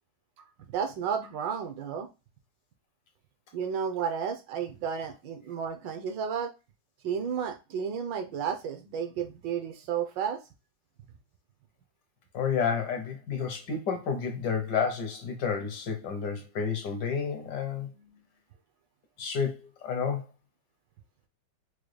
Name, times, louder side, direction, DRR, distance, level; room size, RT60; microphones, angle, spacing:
voice 1, 0.7-2.1 3.5-6.5 7.0-10.4 17.7-18.1, right 7 dB, 75° right, 1.3 m, -32 dB
voice 2, 12.3-17.9 19.2-20.2, left 6 dB, 70° left, 1.2 m, -30 dB
4.8 x 2.2 x 3.2 m
omnidirectional pair, 2.1 m